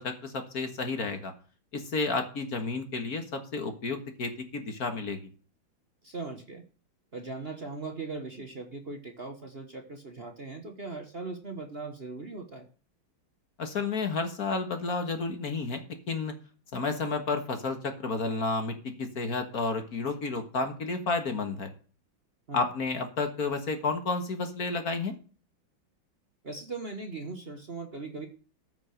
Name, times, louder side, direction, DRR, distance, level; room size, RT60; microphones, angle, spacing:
voice 1, 0.0-1.3 1.7-5.3 13.6-15.8 16.1-16.3 16.7-21.7 22.5-25.1, left 4 dB, 50° left, 7 dB, 1.9 m, -31 dB
voice 2, 6.0-6.6 7.1-12.7 22.5-22.6 26.4-28.3, right 3 dB, 35° right, 5 dB, 1.3 m, -39 dB
14.0 x 6.2 x 6.5 m, 0.40 s
omnidirectional pair, 2.2 m